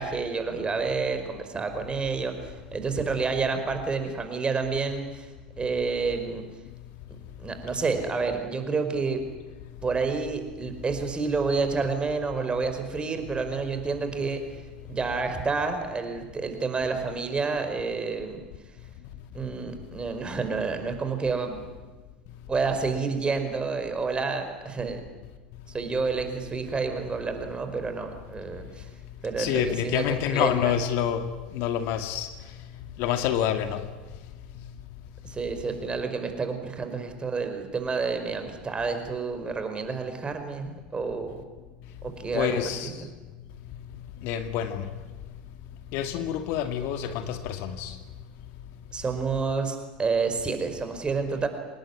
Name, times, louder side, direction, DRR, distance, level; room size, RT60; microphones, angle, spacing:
voice 1, 0.0-5.3 5.6-6.4 7.4-9.2 9.8-14.4 14.9-18.4 19.3-21.6 22.5-25.0 25.7-28.9 29.2-30.0 30.3-30.7 35.2-41.4 42.0-42.9 48.9-51.5, right 4 dB, 20° right, 6 dB, 5.0 m, -29 dB
voice 2, 29.4-31.2 31.5-32.3 33.0-33.8 42.3-42.9 44.2-44.8 45.9-47.4 47.6-47.9, left 10 dB, 60° left, 8 dB, 2.3 m, -27 dB
26.0 x 20.0 x 9.7 m, 1.3 s
hypercardioid pair, 80°, 4 cm